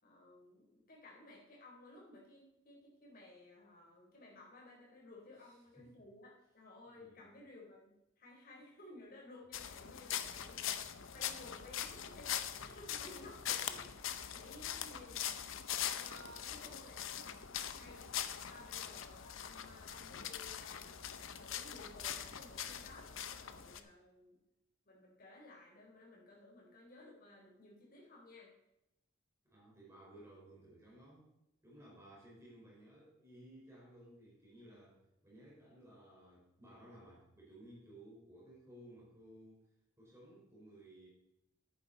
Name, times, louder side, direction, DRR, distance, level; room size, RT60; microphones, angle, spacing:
voice 1, 0.0-10.8 11.1-15.4 15.8-18.1 18.5-20.9 21.4-24.4 24.8-28.5, left 2 dB, 45° left, -3 dB, 4.1 m, -57 dB
voice 2, 5.4-5.9 7.0-7.2 29.5-31.3 31.6-39.6 40.0-41.1, right 1 dB, 15° right, -6 dB, 4.6 m, -58 dB
sound 1, 9.5-23.8, left 9 dB, 75° left, 0.8 m, -42 dB
10.5 x 9.1 x 4.2 m, 0.88 s
head